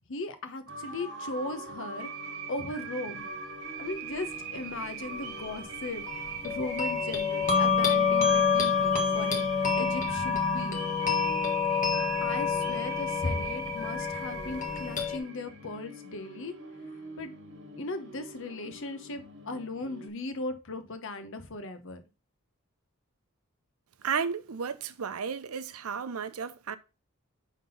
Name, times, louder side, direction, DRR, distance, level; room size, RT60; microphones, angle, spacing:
voice 1, 0.1-2.1 2.5-3.2 3.8-6.0 6.4-9.5 9.8-10.8 12.2-16.5 17.2-17.3 17.8-22.0, left 2 dB, 60° left, 1.0 m, -37 dB
sound 1, 0.7-20.1, right 5 dB, 55° right, 1.5 m, -41 dB
sound 2, 6.1-15.2, left 6 dB, 35° left, 1.3 m, -27 dB
voice 2, 24.0-26.8, right 6 dB, 80° right, 0.6 m, -33 dB
5.6 x 3.7 x 5.5 m
head